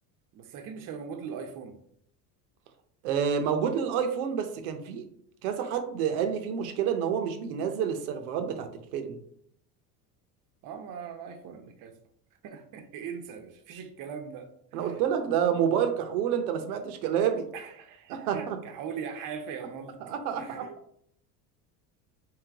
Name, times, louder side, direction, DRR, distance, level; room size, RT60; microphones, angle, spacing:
voice 1, 0.3-1.8 10.6-11.9 12.4-14.9 17.5-20.0 20.4-20.8, right 6 dB, 45° right, 0.7 m, -40 dB
voice 2, 3.0-5.0 5.4-9.2 14.7-17.5 18.1-18.6 20.0-20.7, right 8 dB, 85° right, 0.7 m, -28 dB
3.3 x 3.2 x 3.4 m
supercardioid pair, 100°, 44 cm